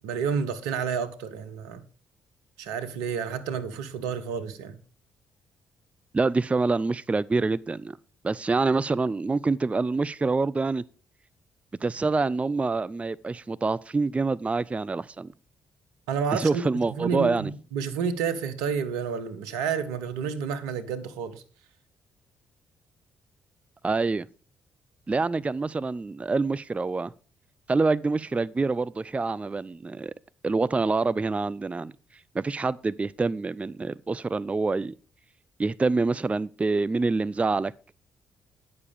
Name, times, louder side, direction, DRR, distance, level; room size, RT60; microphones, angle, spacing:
voice 1, 0.0-1.8 2.6-4.8 16.1-16.6 16.9-21.4, right 6 dB, 80° right, 1.0 m, -30 dB
voice 2, 6.1-8.0 8.2-10.8 11.8-15.3 16.3-17.5 23.8-24.3 25.1-27.1 27.7-30.1 30.4-31.9 32.3-34.9 35.6-37.7, right 3 dB, 20° right, 0.4 m, -26 dB
9.7 x 6.9 x 5.3 m
hypercardioid pair, 45°, 6 cm